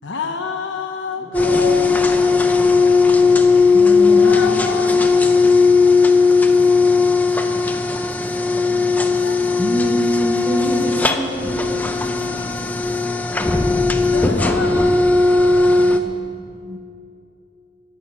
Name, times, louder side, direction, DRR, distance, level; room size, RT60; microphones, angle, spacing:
voice 1, 0.0-2.0 4.0-5.0 9.0-9.4 14.1-15.0, left 5 dB, 75° left, 5 dB, 0.8 m, -28 dB
voice 2, 1.2-3.3 3.7-5.5 10.2-10.8 11.4-15.1, equal, 45° left, -1 dB, 2.5 m, -37 dB
sound 1, 1.3-16.0, left 4 dB, 10° left, 0.6 m, -16 dB
voice 3, 3.7-4.7 9.6-12.4 15.6-16.8, right 1 dB, 15° right, 2 dB, 1.2 m, -26 dB
20.0 x 6.8 x 7.8 m, 2.7 s
head